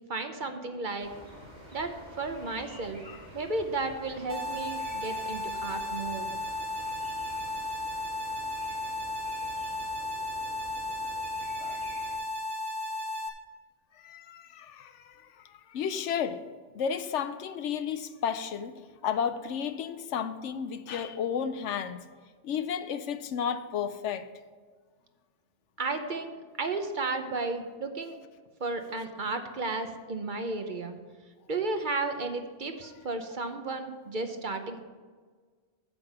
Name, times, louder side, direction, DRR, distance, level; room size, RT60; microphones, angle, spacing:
voice 1, 0.1-1.1 1.7-3.0 3.3-6.3 25.8-28.2 28.6-31.0 31.5-34.8, right 3 dB, 45° right, 0.9 m, -33 dB
sound 1, 1.0-12.1, equal, 85° right, 3.7 m, -49 dB
sound 2, 4.3-13.3, left 1 dB, 65° right, 1.4 m, -34 dB
voice 2, 14.0-16.4 16.7-22.0 22.4-24.3, left 7 dB, 80° left, 1.0 m, -33 dB
8.8 x 7.7 x 5.5 m
omnidirectional pair, 1.2 m